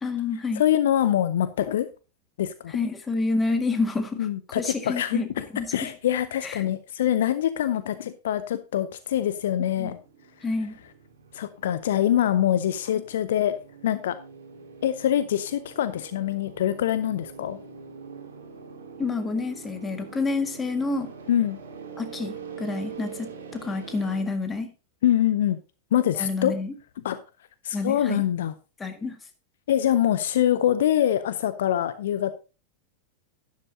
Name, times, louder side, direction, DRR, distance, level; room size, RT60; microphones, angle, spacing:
voice 1, 0.0-0.6 2.7-5.3 5.5-5.9 6.4-6.6 9.8-9.9 10.4-10.8 19.0-21.1 22.0-24.7 26.2-26.7 27.7-28.2 28.8-29.2, left 3 dB, 15° left, 7 dB, 1.8 m, -28 dB
voice 2, 0.6-1.9 2.4-2.8 4.2-5.4 5.7-10.0 11.3-13.6 13.8-14.2 14.8-17.6 21.3-21.6 25.0-25.6 25.9-26.5 27.0-27.2 27.6-28.5 29.7-32.4, left 11 dB, 60° left, 14 dB, 0.6 m, -24 dB
sound 1, 9.3-24.2, right 6 dB, 65° right, 2.6 m, -44 dB
12.0 x 10.5 x 2.7 m, 0.32 s
figure-of-eight pair, 90°, 0 cm